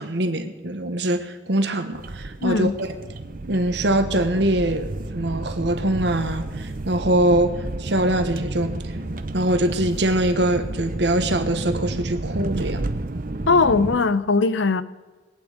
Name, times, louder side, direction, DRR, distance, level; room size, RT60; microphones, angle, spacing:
voice 1, 0.0-2.9 3.5-7.5 7.8-8.7 9.3-12.8, right 1 dB, 60° right, 1.3 m, -23 dB
sound 1, 1.9-14.0, right 2 dB, 45° right, 0.7 m, -31 dB
voice 2, 2.4-2.8 13.5-14.8, left 4 dB, 75° left, 0.7 m, -19 dB
21.5 x 8.9 x 5.1 m
head